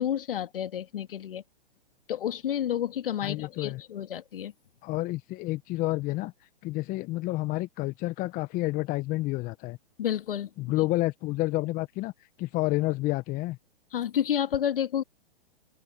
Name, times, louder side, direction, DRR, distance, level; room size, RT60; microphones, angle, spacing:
voice 1, 0.0-1.4 2.1-4.5 10.0-10.5 13.9-15.0, left 10 dB, 70° left, 2.2 m, -30 dB
voice 2, 3.2-3.8 4.8-6.3 6.6-9.8 10.6-12.1 12.4-13.6, left 19 dB, 30° left, 1.1 m, -29 dB
open air
hypercardioid pair, 120°, 29 cm